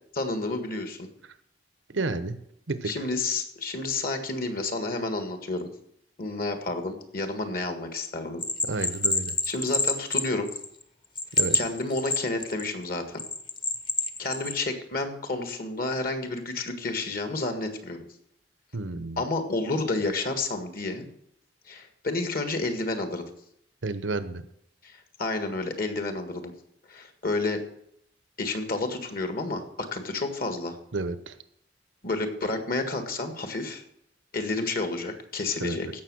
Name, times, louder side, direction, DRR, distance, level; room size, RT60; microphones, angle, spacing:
voice 1, 0.1-1.1 2.8-5.7 6.2-8.4 8.8-8.9 9.5-10.5 11.5-13.2 14.2-18.0 19.2-21.1 21.7-23.2 24.8-26.5 26.9-27.6 28.4-29.6 29.9-30.8 32.0-33.8 34.3-36.0, left 2 dB, 50° left, 7 dB, 1.7 m, -30 dB
voice 2, 1.9-2.4 2.7-2.9 8.6-9.4 11.3-11.6 18.7-19.2 23.8-24.4 30.9-31.4 35.6-35.8, right 3 dB, 85° right, 12 dB, 1.0 m, -31 dB
Bell, 8.4-10.8 11.2-12.7 13.2-14.6, left 3 dB, 25° left, 1.0 m, -27 dB
16.0 x 6.3 x 6.3 m, 0.74 s
head